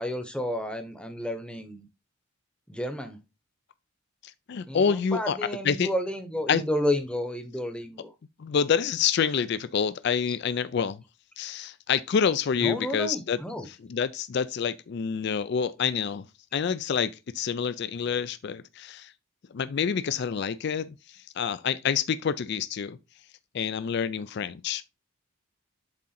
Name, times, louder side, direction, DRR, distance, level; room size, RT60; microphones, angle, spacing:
voice 1, 0.0-1.9 2.7-3.2 4.7-8.1 12.5-13.7, equal, 5° left, 0.8 m, -31 dB
voice 2, 4.5-5.4 5.6-5.9 6.5-6.6 8.4-11.0 11.4-13.4 13.7-16.2 16.5-19.1 19.5-23.0 23.5-24.8, left 7 dB, 50° left, 0.3 m, -27 dB
7.6 x 3.7 x 4.2 m
head